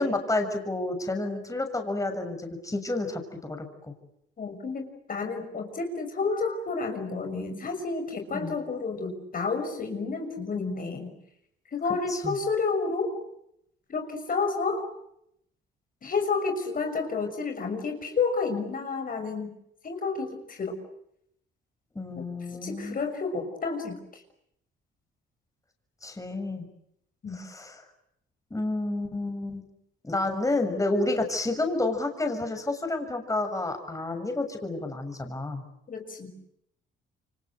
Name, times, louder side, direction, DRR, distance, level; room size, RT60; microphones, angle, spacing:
voice 1, 0.0-3.9 8.3-8.5 12.1-12.3 21.9-23.0 26.0-26.7 27.3-27.8 28.5-29.6 30.0-35.6, left 2 dB, 15° left, 6 dB, 6.8 m, -30 dB
voice 2, 4.4-11.1 11.7-13.1 13.9-14.9 16.0-19.5 19.8-20.7 22.2-22.3 22.6-24.2 27.2-27.4 35.9-36.5, left 4 dB, 45° left, 5 dB, 6.3 m, -30 dB
29.5 x 25.0 x 8.0 m, 0.76 s
cardioid pair, 90°, 20 cm